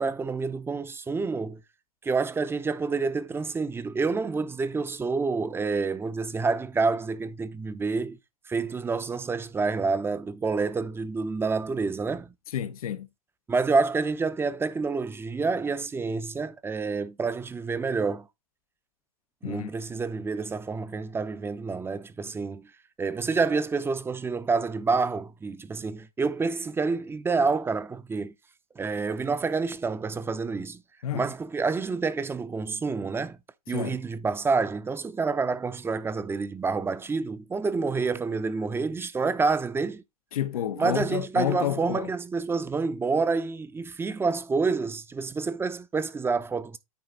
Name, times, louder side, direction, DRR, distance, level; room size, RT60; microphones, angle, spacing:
voice 1, 0.0-1.6 2.0-8.2 8.5-12.3 13.5-18.3 19.4-22.7 23.0-28.3 28.8-30.8 31.1-33.4 33.7-40.0 40.8-46.8, right 4 dB, 15° right, 0.6 m, -28 dB
voice 2, 12.5-13.1 19.4-19.7 31.0-31.3 33.7-34.0 40.3-42.1, left 10 dB, 80° left, 0.8 m, -30 dB
9.6 x 4.0 x 3.7 m
hypercardioid pair, 110°, 18 cm